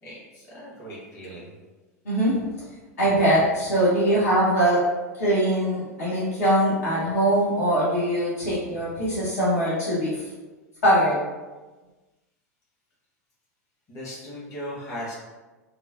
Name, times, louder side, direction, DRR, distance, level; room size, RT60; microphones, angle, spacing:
voice 1, 0.0-1.5 13.9-15.1, equal, 30° left, -7 dB, 1.3 m, -38 dB
voice 2, 3.0-4.8 5.2-10.2 10.8-11.2, right 1 dB, 65° left, -9 dB, 0.8 m, -22 dB
3.0 x 2.1 x 2.5 m, 1.2 s
figure-of-eight pair, 90°, 9 cm